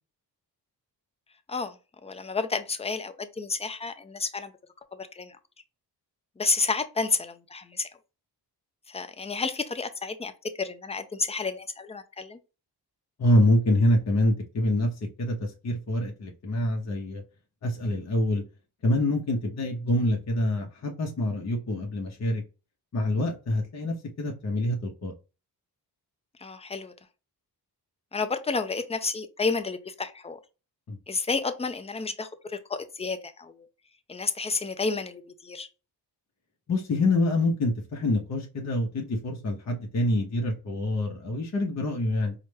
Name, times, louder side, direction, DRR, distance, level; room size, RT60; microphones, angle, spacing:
voice 1, 2.0-4.5 4.9-5.4 6.4-7.9 8.9-10.3 10.6-12.4 26.4-26.9 28.1-30.4 31.1-33.7 34.1-35.7, left 4 dB, 15° left, 0.4 m, -31 dB
voice 2, 13.2-14.9 15.2-17.2 17.6-18.4 18.8-22.4 22.9-25.1 30.9-31.0 36.7-42.3, left 1 dB, 40° left, 0.8 m, -26 dB
4.8 x 2.2 x 3.2 m
wide cardioid pair, 110°, 40 cm